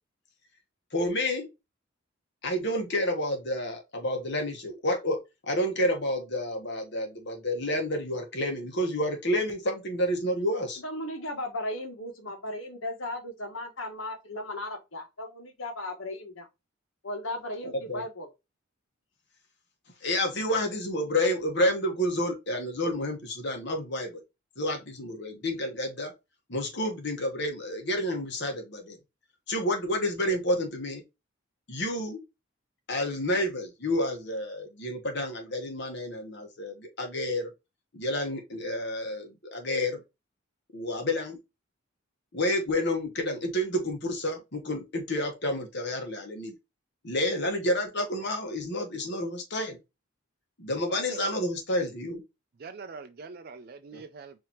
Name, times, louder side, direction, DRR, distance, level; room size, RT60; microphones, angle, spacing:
voice 1, 0.9-1.5 2.4-5.2 5.5-10.8 17.9-18.0 20.0-24.2 24.6-26.1 26.5-29.0 29.5-31.0 31.7-32.2 32.9-37.5 37.9-40.0 40.7-41.4 42.3-46.6 47.0-49.8 50.6-52.2 53.9-54.0, left 1 dB, 55° left, 1.3 m, -29 dB
voice 2, 10.8-16.5 17.0-18.3, left 1 dB, 70° left, 1.3 m, -36 dB
voice 3, 52.6-54.3, right 4 dB, 45° right, 0.4 m, -43 dB
4.9 x 2.9 x 2.9 m
head